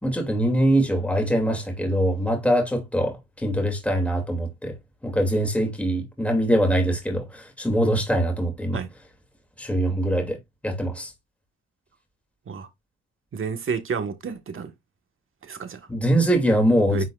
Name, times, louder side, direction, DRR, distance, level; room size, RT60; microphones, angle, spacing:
voice 1, 0.0-4.7 5.0-8.8 9.6-10.4 10.6-11.1 15.9-17.0, right 1 dB, 5° left, 2.7 m, -23 dB
voice 2, 13.3-14.7 15.5-15.8 16.9-17.0, right 5 dB, 45° right, 1.5 m, -30 dB
9.7 x 4.5 x 2.5 m
cardioid pair, 90°, 30 cm